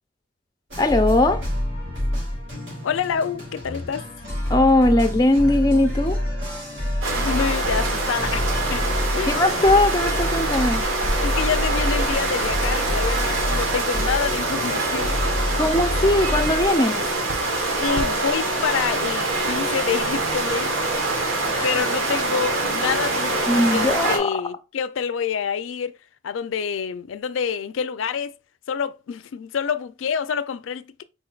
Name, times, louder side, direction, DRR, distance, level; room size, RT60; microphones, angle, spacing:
sound 1, 0.7-16.7, left 1 dB, 70° right, 2.7 m, -27 dB
voice 1, 0.8-1.4 4.5-6.2 9.3-10.9 15.5-17.0 21.5-21.8 23.5-24.3, left 1 dB, 20° left, 0.4 m, -19 dB
voice 2, 2.8-4.1 7.1-8.9 9.1-9.4 11.2-15.2 17.8-20.7 21.4-26.0 26.2-28.3 28.7-31.0, left 7 dB, 85° left, 0.4 m, -27 dB
sound 2, 7.0-24.2, right 2 dB, 90° right, 1.2 m, -25 dB
4.6 x 4.4 x 2.3 m
head